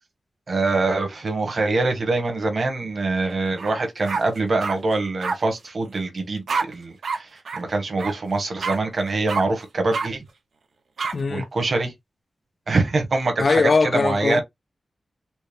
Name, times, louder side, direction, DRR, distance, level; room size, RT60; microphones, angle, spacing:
voice 1, 0.5-10.2 11.3-11.9 12.7-14.4, right 3 dB, 45° right, 1.0 m, -24 dB
sound 1, 3.6-3.7 4.1-4.8 5.2-5.4 6.5-6.6 7.0-7.2 7.4-7.6 8.0-8.1 8.6-8.8 9.3-9.4 9.9-10.1 11.0-11.1, right 4 dB, 80° right, 0.8 m, -26 dB
voice 2, 11.1-11.5 13.4-14.4, left 4 dB, 40° left, 0.3 m, -20 dB
4.3 x 2.0 x 3.3 m
wide cardioid pair, 175°, 0 cm